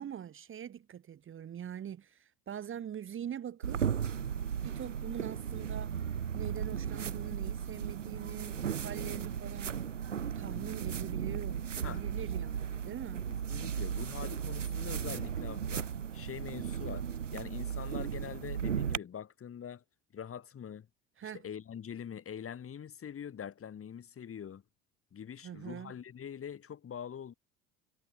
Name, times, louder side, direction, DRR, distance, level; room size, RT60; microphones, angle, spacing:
voice 1, 0.0-3.8 4.6-6.0 6.3-9.8 10.3-13.3 21.2-21.4 25.4-25.9, right 9 dB, 35° right, 1.4 m, -43 dB
sound 1, 3.6-19.0, right 8 dB, 90° right, 1.9 m, -36 dB
voice 2, 13.5-19.8 20.1-20.9 21.2-24.6 25.1-27.3, left 8 dB, 40° left, 6.7 m, -44 dB
hypercardioid pair, 70°, 36 cm